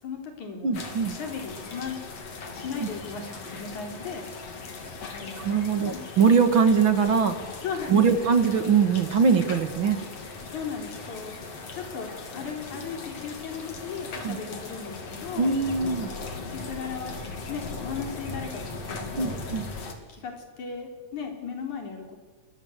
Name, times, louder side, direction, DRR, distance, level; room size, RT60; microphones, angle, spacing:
voice 1, 0.0-0.8 1.1-2.0 2.5-4.2 5.1-5.5 5.8-6.0 7.6-8.3 10.5-11.4 11.7-15.6 16.3-17.1 17.5-19.5 20.1-22.2, left 6 dB, 80° left, 4 dB, 5.5 m, -36 dB
voice 2, 0.6-1.2 2.8-2.9 5.4-7.4 7.9-10.0 14.2-14.4 15.4-16.1 19.2-19.7, right 6 dB, 45° right, 9 dB, 2.3 m, -22 dB
sound 1, 0.7-19.9, left 3 dB, 55° left, 3.9 m, -39 dB
29.5 x 22.0 x 8.2 m, 1.4 s
omnidirectional pair, 3.4 m